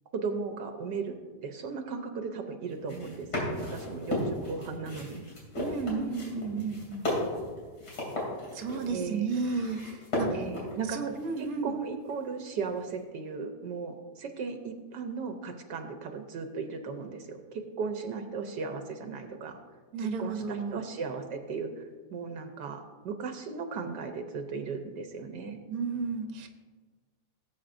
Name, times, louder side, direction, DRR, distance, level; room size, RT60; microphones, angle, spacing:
voice 1, 0.1-1.1 1.4-5.2 8.9-9.3 10.3-11.0 11.4-19.6 20.2-25.6, right 5 dB, 75° right, 5 dB, 1.4 m, -36 dB
sound 1, 2.7-11.5 12.1-12.7, left 1 dB, 70° left, 3.6 m, -35 dB
voice 2, 5.6-7.2 8.5-10.4 10.9-11.7 19.9-20.8 25.7-26.5, right 4 dB, 60° right, 5 dB, 1.3 m, -33 dB
18.0 x 8.2 x 2.6 m, 1.4 s
omnidirectional pair, 1.9 m